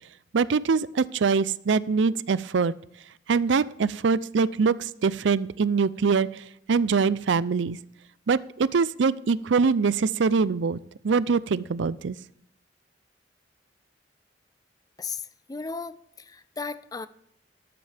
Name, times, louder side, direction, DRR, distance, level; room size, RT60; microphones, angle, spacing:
voice 1, 0.3-2.7 3.3-7.8 8.3-10.8 11.0-12.2, right 5 dB, 80° right, 0.5 m, -23 dB
voice 2, 15.0-17.1, left 4 dB, 20° left, 0.5 m, -36 dB
13.0 x 13.0 x 3.4 m
head